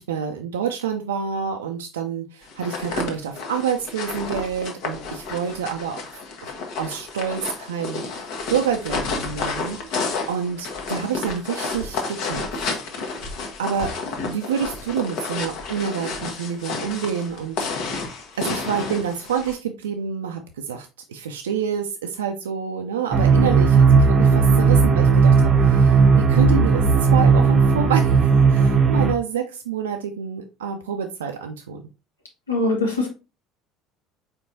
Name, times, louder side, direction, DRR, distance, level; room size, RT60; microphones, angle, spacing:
voice 1, 0.0-6.2 6.8-12.5 13.6-13.9 14.3-17.6 18.4-31.8, right 7 dB, 75° right, 5 dB, 0.4 m, -28 dB
sound 1, 2.5-19.5, left 4 dB, 60° left, 1.0 m, -31 dB
sound 2, 23.1-29.1, right 5 dB, 40° right, 0.7 m, -15 dB
voice 2, 32.5-33.1, left 2 dB, 85° left, 1 dB, 1.2 m, -22 dB
4.4 x 4.4 x 2.6 m, 0.30 s
figure-of-eight pair, 60°, 0 cm